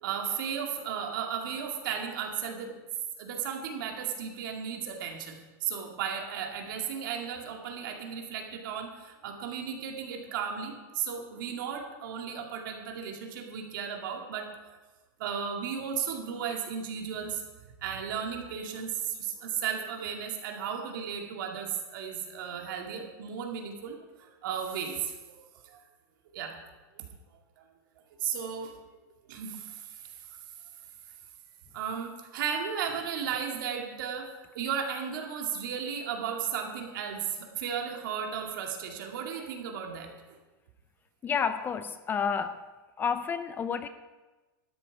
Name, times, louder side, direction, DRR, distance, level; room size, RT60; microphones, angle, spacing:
voice 1, 0.0-2.8 3.2-14.8 15.2-17.4 17.8-25.4 25.6-25.8 26.3-26.6 27.0-27.1 27.6-27.7 28.2-28.7 29.3-30.4 31.7-40.4, right 7 dB, 65° right, 2 dB, 2.3 m, -35 dB
voice 2, 41.2-42.6 43.0-43.9, left 6 dB, 15° left, 11 dB, 0.4 m, -30 dB
12.5 x 10.5 x 4.7 m, 1.2 s
supercardioid pair, 150°, 12 cm